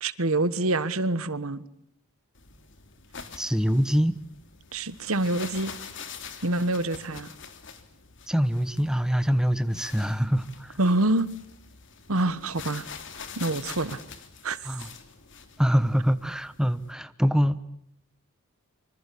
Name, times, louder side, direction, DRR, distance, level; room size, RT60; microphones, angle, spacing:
voice 1, 0.0-1.6 4.7-5.7 6.4-7.3 10.8-11.3 12.1-12.9 13.4-14.0 14.4-14.7, right 2 dB, 70° right, 15 dB, 1.4 m, -26 dB
sound 1, 2.3-16.9, left 6 dB, 60° left, 3.3 m, -45 dB
voice 2, 3.4-4.2 8.3-10.8 14.6-14.9 15.6-17.6, equal, 5° right, 12 dB, 1.1 m, -24 dB
26.0 x 25.5 x 8.4 m, 0.74 s
head